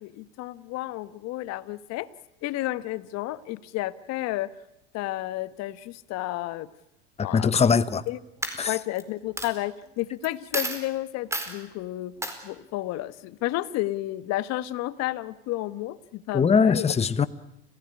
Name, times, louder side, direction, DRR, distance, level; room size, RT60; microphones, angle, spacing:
voice 1, 0.0-2.1 2.4-4.5 4.9-6.7 7.2-7.5 8.1-8.2 8.7-12.1 12.4-16.9, left 16 dB, 55° left, 1.3 m, -31 dB
voice 2, 7.2-8.0 8.6-8.7 16.3-17.3, left 6 dB, 20° left, 1.0 m, -21 dB
Coin (dropping), 7.8-8.1 8.4-9.0 9.4-9.5 10.2-10.3 10.5-10.8 11.3-11.5 12.2-12.4, right 1 dB, 10° right, 4.5 m, -30 dB
29.5 x 16.5 x 9.7 m
hypercardioid pair, 90°, 31 cm